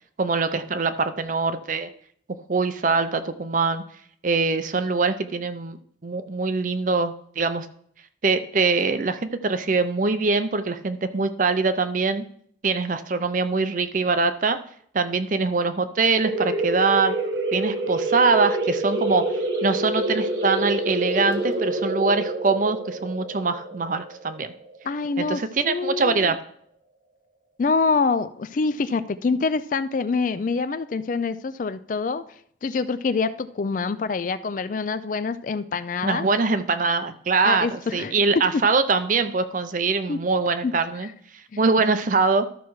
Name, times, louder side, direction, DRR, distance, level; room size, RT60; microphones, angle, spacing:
voice 1, 0.2-1.9 2.5-3.8 4.2-7.7 8.2-12.2 12.6-14.6 14.9-17.1 17.5-19.2 19.6-24.5 25.2-26.4 36.0-41.1 41.6-42.5, right 4 dB, 45° right, 10 dB, 0.5 m, -23 dB
sound 1, 16.2-25.6, right 2 dB, 75° right, 1.2 m, -27 dB
voice 2, 24.8-25.4 25.7-26.3 27.6-32.2 32.6-36.3 37.4-38.1 38.5-38.6 40.1-40.2 40.6-40.7 41.5-41.6, left 4 dB, 45° left, 13 dB, 0.4 m, -25 dB
13.5 x 5.8 x 3.1 m, 0.64 s
head